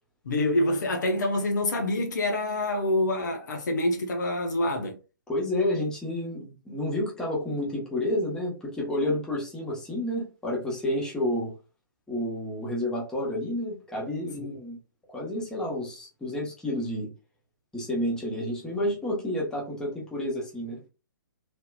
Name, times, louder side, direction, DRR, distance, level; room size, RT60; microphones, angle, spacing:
voice 1, 0.2-5.0 14.4-14.5, left 1 dB, 60° left, 0.8 m, -26 dB
voice 2, 5.3-11.5 12.1-14.8 15.1-17.1 17.7-20.8, left 1 dB, 5° left, 1.1 m, -30 dB
3.4 x 2.8 x 2.3 m
figure-of-eight pair, 125°, 11 cm